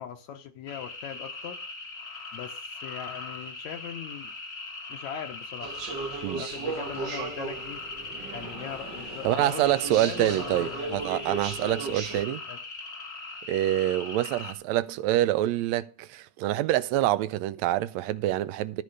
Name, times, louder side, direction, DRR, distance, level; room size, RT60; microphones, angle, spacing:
voice 1, 0.0-1.6 2.3-4.3 4.9-5.7 6.4-7.8 8.3-11.0 12.5-12.6, left 9 dB, 75° left, 2.3 m, -40 dB
sound 1, 0.7-14.5, left 3 dB, 40° left, 0.9 m, -40 dB
sound 2, 5.6-12.2, right 4 dB, 55° right, 1.2 m, -36 dB
voice 2, 9.2-12.4 13.5-18.8, right 14 dB, 75° right, 1.7 m, -26 dB
13.0 x 4.9 x 6.6 m
omnidirectional pair, 3.4 m